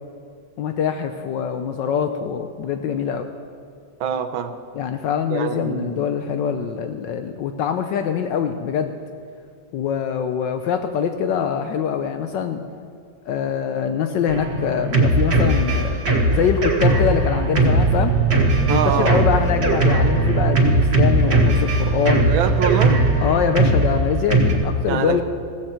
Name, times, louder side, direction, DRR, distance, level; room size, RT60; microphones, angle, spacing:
voice 1, 0.6-3.3 4.7-8.9 9.7-12.6 13.2-16.0 16.3-18.2 18.7-22.3 23.2-25.2, left 7 dB, 75° left, 7 dB, 1.3 m, -23 dB
voice 2, 4.0-4.5 5.3-6.1 18.7-19.3 22.2-23.0 24.9-25.2, right 7 dB, 85° right, 10 dB, 1.6 m, -24 dB
Drum kit, 14.3-24.5, right 1 dB, 55° right, 2.0 m, -19 dB
sound 1, 17.5-23.2, right 10 dB, 70° right, 1.3 m, -23 dB
16.0 x 15.5 x 4.4 m, 2.3 s
omnidirectional pair, 2.1 m